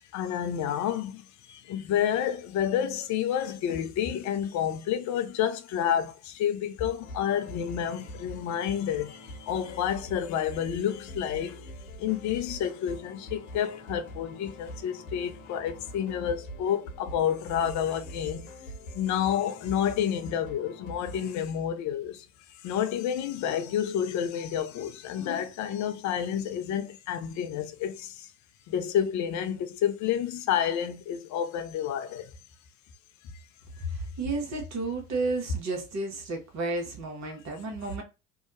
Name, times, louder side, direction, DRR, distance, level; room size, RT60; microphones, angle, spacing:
voice 1, 0.1-1.2 1.5-11.6 12.0-18.5 18.9-22.3 22.6-28.3 28.7-32.3, left 9 dB, 45° left, 0.5 m, -29 dB
sound 1, 7.0-21.3, equal, 70° left, 0.9 m, -44 dB
voice 2, 33.8-38.0, right 2 dB, 40° right, 1.1 m, -32 dB
2.7 x 2.2 x 2.5 m
hypercardioid pair, 65°, 41 cm